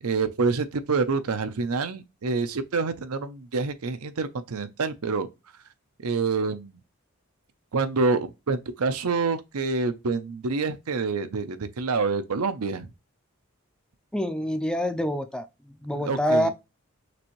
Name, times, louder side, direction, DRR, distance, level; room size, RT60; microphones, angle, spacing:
voice 1, 0.0-5.3 6.0-6.8 7.7-12.9 15.9-16.5, right 4 dB, 85° right, 0.6 m, -27 dB
voice 2, 14.1-16.5, equal, 5° left, 0.4 m, -26 dB
6.0 x 2.6 x 3.0 m
head